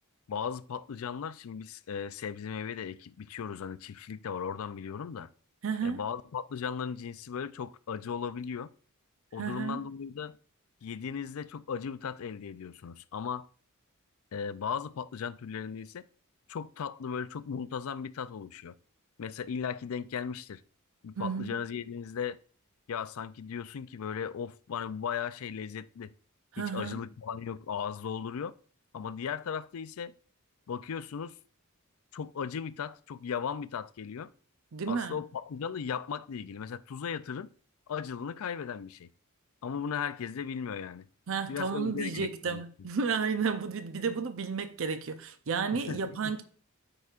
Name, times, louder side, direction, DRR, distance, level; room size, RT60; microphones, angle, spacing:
voice 1, 0.3-5.3 5.8-8.7 9.3-10.4 10.8-13.5 14.3-16.0 16.5-18.8 19.2-20.6 21.0-22.4 22.9-26.1 26.6-28.5 28.9-30.1 30.7-31.4 32.1-34.3 34.9-37.5 37.9-39.1 39.6-41.1 41.5-42.6 45.7-46.4, left 7 dB, 70° left, 0.4 m, -37 dB
voice 2, 5.6-6.0 9.4-9.9 21.2-21.6 26.5-27.0 34.7-35.2 41.3-46.4, right 5 dB, 60° right, 0.6 m, -32 dB
13.5 x 4.9 x 2.4 m
head